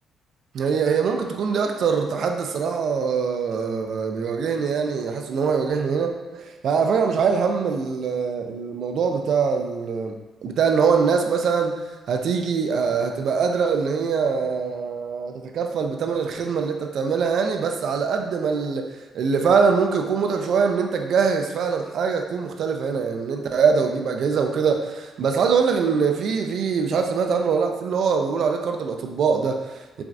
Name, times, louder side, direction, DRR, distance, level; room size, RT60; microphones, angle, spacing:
voice 1, 0.5-10.1 10.4-11.8 12.1-18.9 19.1-30.0, right 5 dB, 65° right, 4 dB, 0.3 m, -23 dB
4.0 x 2.3 x 2.5 m, 1.2 s
cardioid pair, 90°, 0 cm